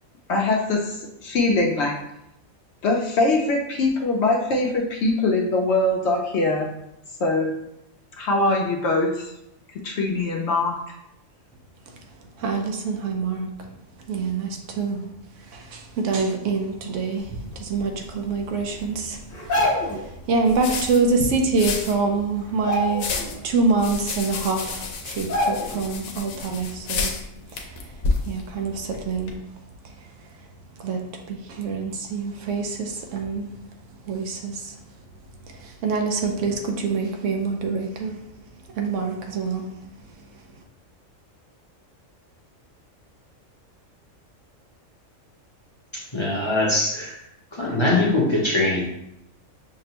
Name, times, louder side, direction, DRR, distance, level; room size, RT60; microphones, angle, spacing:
voice 1, 0.3-2.0 2.8-6.7 7.2-7.5 8.2-9.3 9.8-10.8, left 2 dB, 65° left, 0 dB, 0.8 m, -22 dB
voice 2, 12.4-13.5 14.1-15.1 15.4-23.2 23.4-27.2 27.5-27.9 28.2-29.5 29.8-30.4 30.8-33.6 34.1-34.8 35.5-38.2 38.7-39.7 40.2-40.3, right 4 dB, 70° right, 3 dB, 0.9 m, -26 dB
sound 1, 17.2-29.3, left 4 dB, 90° left, 1.0 m, -33 dB
sound 2, 19.3-20.1 21.5-21.6 21.9-22.2 22.5-23.4 23.8-23.9 24.6-24.7 25.3-25.9 26.3-26.4, left 1 dB, 45° left, 1.2 m, -25 dB
voice 3, 45.9-47.2 47.5-48.8, left 2 dB, 30° left, -5 dB, 0.7 m, -22 dB
5.8 x 2.1 x 2.8 m, 0.82 s
omnidirectional pair, 1.4 m